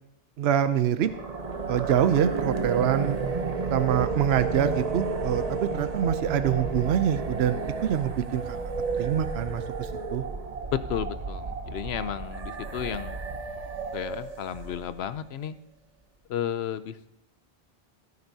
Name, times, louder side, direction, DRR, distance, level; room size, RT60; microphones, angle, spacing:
voice 1, 0.4-1.1 1.7-3.2 3.7-8.6 8.9-10.2, right 10 dB, 85° right, 11 dB, 0.8 m, -25 dB
sound 1, 1.0-15.1, right 4 dB, 40° right, 0.9 m, -32 dB
voice 2, 10.7-13.2 13.9-15.6 16.3-17.1, left 9 dB, 85° left, 13 dB, 0.9 m, -33 dB
16.0 x 9.6 x 2.7 m, 0.80 s
omnidirectional pair, 1.0 m